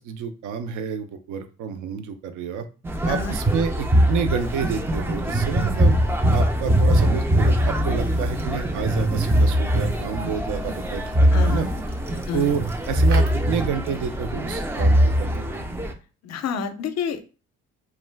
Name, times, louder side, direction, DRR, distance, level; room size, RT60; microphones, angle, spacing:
voice 1, 0.0-2.7 3.0-6.0 6.3-11.7 12.3-15.7, right 7 dB, 80° right, 9 dB, 0.5 m, -29 dB
sound 1, 2.8-15.9, equal, 10° right, 0.3 m, -21 dB
sound 2, 8.0-14.4, right 3 dB, 65° right, 1.0 m, -45 dB
voice 2, 11.3-11.7 12.2-12.5 16.2-17.2, left 7 dB, 60° left, 9 dB, 0.5 m, -29 dB
2.4 x 2.2 x 3.2 m, 0.34 s
cardioid pair, 90°, 30 cm